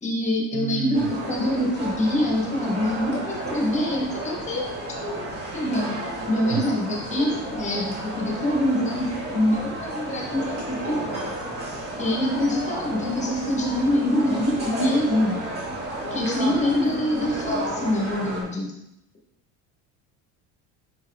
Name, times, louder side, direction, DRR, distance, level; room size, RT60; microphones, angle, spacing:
voice 1, 0.0-6.0 6.3-11.3 12.0-15.4 16.1-18.7, left 1 dB, 20° left, -1 dB, 1.4 m, -25 dB
voice 2, 0.5-1.1 6.5-6.6 16.0-16.2, right 13 dB, 45° right, 7 dB, 0.5 m, -31 dB
sound 1, 0.9-18.4, right 1 dB, 30° right, 2.1 m, -32 dB
5.5 x 4.8 x 4.7 m, 0.83 s
cardioid pair, 150°, 34 cm